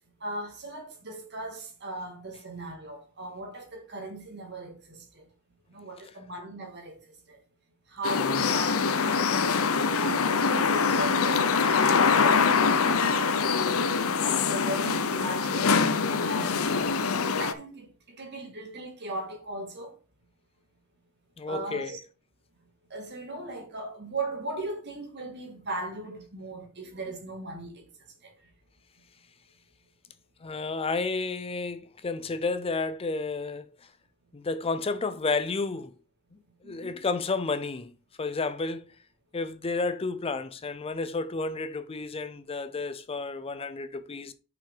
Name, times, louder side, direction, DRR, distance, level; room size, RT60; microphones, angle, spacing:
voice 1, 0.2-5.3 5.7-7.4 7.9-8.9 9.3-13.2 14.2-17.0 17.4-20.0 21.5-22.0 22.9-27.8 28.2-28.4 36.6-37.0, right 2 dB, 55° right, 2.3 m, -38 dB
sound 1, 8.0-17.5, left 5 dB, 70° left, 0.7 m, -24 dB
voice 2, 21.4-22.0 30.4-33.7 34.3-35.9 36.6-37.9 38.2-38.9 39.3-44.3, left 3 dB, 25° left, 0.5 m, -31 dB
5.8 x 5.8 x 4.9 m
head